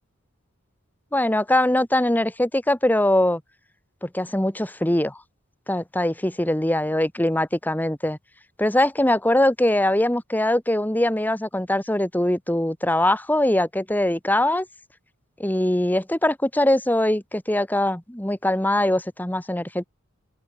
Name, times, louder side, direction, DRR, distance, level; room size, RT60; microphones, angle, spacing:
voice 1, 1.1-3.4 4.0-5.2 5.7-8.2 8.6-14.7 15.4-19.9, left 1 dB, 10° left, 1.3 m, -22 dB
open air
head